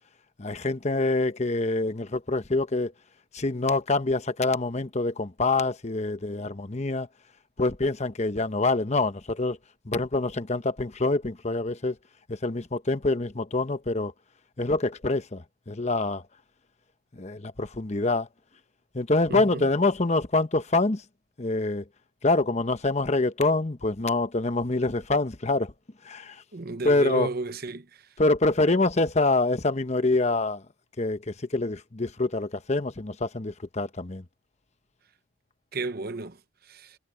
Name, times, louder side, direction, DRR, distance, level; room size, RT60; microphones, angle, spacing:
voice 1, 0.4-2.9 3.3-7.1 7.6-9.6 9.9-12.0 12.3-14.1 14.6-16.2 17.2-18.3 18.9-21.0 21.4-21.8 22.2-25.7 26.0-26.4 26.8-27.3 28.2-30.6 31.0-34.2, left 2 dB, 35° left, 1.0 m, -25 dB
voice 2, 19.3-19.7 26.5-27.9 35.7-36.4 36.7-37.0, right 3 dB, 50° right, 0.8 m, -32 dB
head